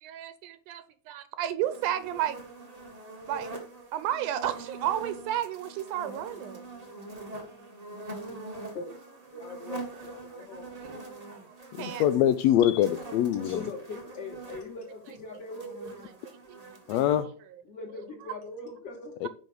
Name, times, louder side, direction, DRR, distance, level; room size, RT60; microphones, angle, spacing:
voice 1, 0.0-2.4 3.3-3.5 3.9-6.6 11.3-12.0 16.5-16.6 16.9-17.0, right 11 dB, 80° right, 12 dB, 2.1 m, -32 dB
sound 1, 1.6-17.2, right 2 dB, 35° right, 0.6 m, -44 dB
voice 2, 9.3-10.6 13.4-16.1 17.7-19.2, left 3 dB, 45° left, -2 dB, 4.0 m, -41 dB
voice 3, 11.8-13.6 16.9-17.3 19.2-19.3, left 11 dB, 80° left, 10 dB, 1.5 m, -24 dB
9.7 x 4.4 x 6.3 m, 0.43 s
omnidirectional pair, 3.7 m